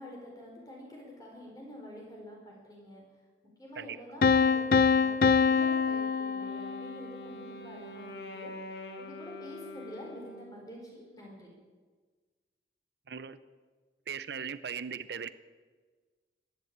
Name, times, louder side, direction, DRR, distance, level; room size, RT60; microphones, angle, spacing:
voice 1, 0.0-3.0 3.6-11.5, equal, 20° left, -1 dB, 4.5 m, -47 dB
Piano, 4.2-7.1, left 5 dB, 50° left, 0.5 m, -25 dB
Wind instrument woodwind instrument, 6.1-10.7, left 1 dB, 70° left, 1.7 m, -45 dB
voice 2, 13.1-13.4 14.1-15.3, right 7 dB, 70° right, 14 dB, 0.6 m, -38 dB
15.0 x 10.5 x 8.7 m, 1.4 s
head